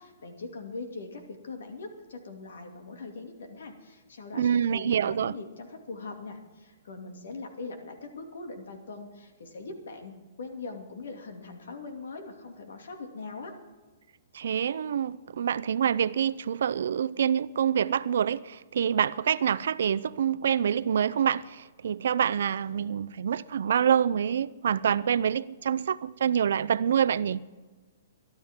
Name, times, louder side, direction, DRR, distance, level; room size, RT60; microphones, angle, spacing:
voice 1, 0.0-13.6, left 3 dB, 85° left, 2.5 m, -41 dB
voice 2, 4.3-5.3 14.3-27.4, right 8 dB, 70° right, 0.5 m, -26 dB
22.5 x 12.0 x 3.7 m
hypercardioid pair, 160°, 0 cm